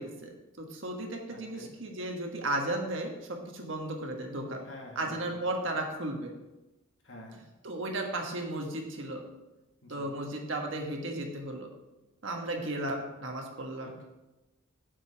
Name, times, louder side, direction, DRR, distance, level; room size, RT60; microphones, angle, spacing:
voice 1, 0.0-4.6 4.9-6.3 7.6-9.2 9.9-11.7 12.2-13.9, right 1 dB, 60° right, 1 dB, 1.4 m, -35 dB
voice 2, 1.3-1.7 4.6-5.4 7.0-7.4 9.8-10.2 13.8-14.0, left 1 dB, 55° left, -1 dB, 2.0 m, -48 dB
7.5 x 5.4 x 7.1 m, 1.0 s
head